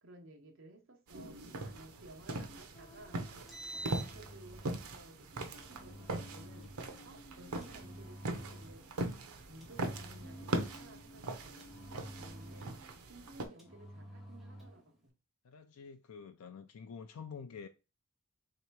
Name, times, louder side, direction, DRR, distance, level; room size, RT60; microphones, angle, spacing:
voice 1, 0.0-3.2 3.8-6.7 7.0-8.8 9.4-11.6 12.2-12.7 13.1-15.1, right 1 dB, 60° right, 0.9 m, -56 dB
sound 1, 1.1-13.5, right 2 dB, 90° right, 0.7 m, -41 dB
sound 2, 2.7-4.9 5.7-9.4 10.2-13.0, equal, 20° left, 0.4 m, -58 dB
Engine, 3.3-4.8 5.6-6.8 7.6-8.9 9.6-10.9 11.6-12.9 13.6-14.8, right 1 dB, ahead, 0.7 m, -49 dB
voice 2, 15.4-17.7, left 6 dB, 90° left, 0.4 m, -49 dB
3.3 x 2.9 x 4.5 m
head